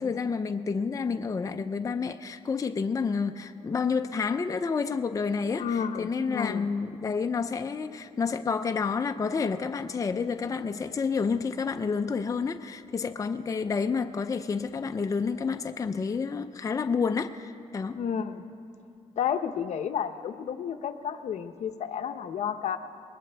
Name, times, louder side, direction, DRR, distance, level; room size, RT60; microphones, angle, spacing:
voice 1, 0.0-18.0, left 5 dB, 30° left, 0.5 m, -29 dB
voice 2, 5.6-6.7 18.0-18.4 19.2-22.8, left 8 dB, 70° left, 0.7 m, -31 dB
21.5 x 19.5 x 3.4 m
cardioid pair, 120°, 12 cm